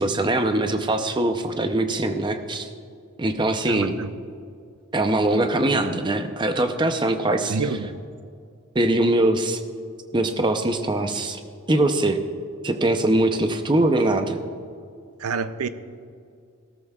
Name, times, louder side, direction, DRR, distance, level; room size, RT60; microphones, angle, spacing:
voice 1, 0.0-2.7 3.2-3.9 4.9-7.6 8.7-9.6 10.1-11.4 11.7-12.2 12.6-14.4, right 1 dB, 20° right, 6 dB, 0.6 m, -22 dB
voice 2, 3.7-4.1 7.5-8.0 15.2-15.7, right 4 dB, 85° right, 12 dB, 0.6 m, -28 dB
17.0 x 13.5 x 2.4 m, 2.3 s
head